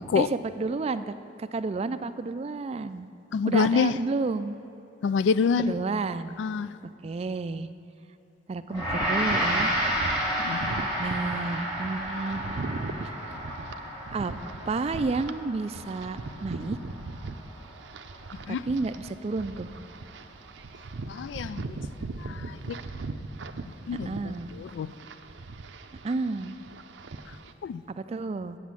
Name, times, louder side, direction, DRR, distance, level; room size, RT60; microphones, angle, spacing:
voice 1, 0.2-1.1 1.4-3.1 3.5-4.6 5.6-6.4 7.0-7.7 8.5-9.7 11.0-12.4 14.1-14.3 14.7-16.8 18.5-19.7 24.0-24.5 26.0-26.6 27.9-28.6, right 3 dB, 35° right, 0.3 m, -31 dB
voice 2, 3.3-3.9 5.0-5.8 6.4-6.7 10.4-10.7 18.5-18.6 21.1-21.7 22.2-22.8 23.9-24.1 24.6-24.9 27.6-27.8, left 5 dB, 85° left, 0.3 m, -26 dB
Gong, 8.7-18.1, equal, 25° left, 2.5 m, -31 dB
sound 1, 8.8-15.3 15.7-27.5, right 3 dB, 90° right, 0.5 m, -39 dB
8.5 x 8.2 x 7.3 m
head